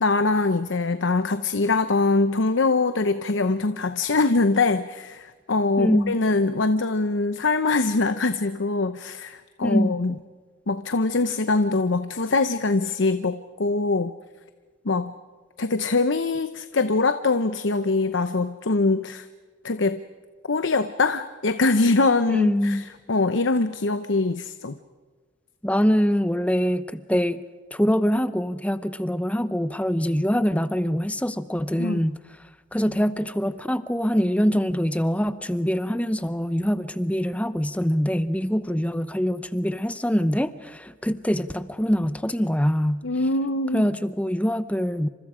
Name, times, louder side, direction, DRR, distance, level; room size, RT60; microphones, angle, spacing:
voice 1, 0.0-10.1 10.7-14.1 14.8-15.1 15.6-19.3 19.6-20.0 20.5-22.8 23.1-24.7 31.8-32.0 43.0-43.9, left 3 dB, 70° left, 11 dB, 0.8 m, -23 dB
voice 2, 5.8-6.2 9.6-10.2 22.3-22.8 25.6-27.4 27.7-32.2 32.7-43.0 43.7-45.1, equal, 5° left, 13 dB, 0.8 m, -24 dB
28.5 x 26.5 x 5.0 m, 1.4 s
head